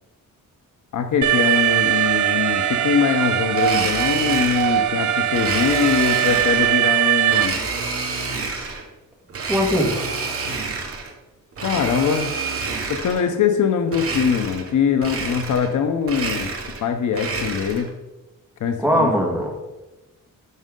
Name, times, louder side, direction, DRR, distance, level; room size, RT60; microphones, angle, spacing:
voice 1, 0.9-7.6 11.6-12.3 12.9-16.5 16.8-17.9 18.6-19.1, left 7 dB, 60° left, 7 dB, 0.7 m, -22 dB
Alarm, 1.2-7.5, right 12 dB, 60° right, 0.6 m, -20 dB
Domestic sounds home sounds, 3.5-4.8 5.3-6.8 7.3-8.9 9.3-11.1 11.5-13.3 13.9-14.7 15.0-15.8 16.0-17.9, right 4 dB, 45° right, 1.3 m, -28 dB
voice 2, 9.5-9.9 18.8-19.5, equal, 5° right, -1 dB, 1.5 m, -19 dB
11.0 x 6.3 x 3.8 m, 1.0 s
wide cardioid pair, 175°, 33 cm